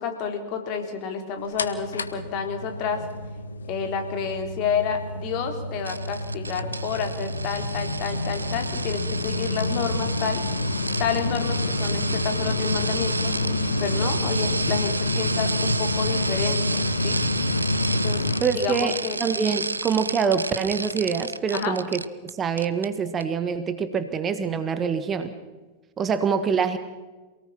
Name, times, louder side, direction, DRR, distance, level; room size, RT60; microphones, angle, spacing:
voice 1, 0.0-3.1 3.7-10.4 11.0-13.4 13.8-17.2 18.0-18.3 18.5-19.2 21.5-21.8, left 6 dB, 40° left, 5 dB, 3.9 m, -29 dB
sound 1, 1.6-18.4, left 2 dB, 75° left, 1.6 m, -28 dB
sound 2, 5.8-22.3 22.6-22.9 23.2-23.3, right 3 dB, 80° right, 0.7 m, -32 dB
voice 2, 18.4-25.3 26.0-26.8, right 6 dB, 25° right, 10 dB, 1.6 m, -25 dB
27.5 x 18.5 x 6.0 m, 1.2 s
figure-of-eight pair, 90°, 0 cm